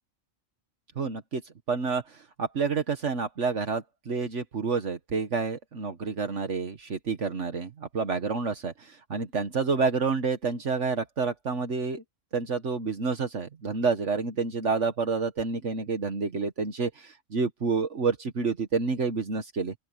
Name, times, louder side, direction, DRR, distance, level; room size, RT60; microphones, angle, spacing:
voice 1, 1.0-1.4 1.7-12.0 12.3-19.7, right 4 dB, 70° right, 1.8 m, -29 dB
open air
omnidirectional pair, 1.3 m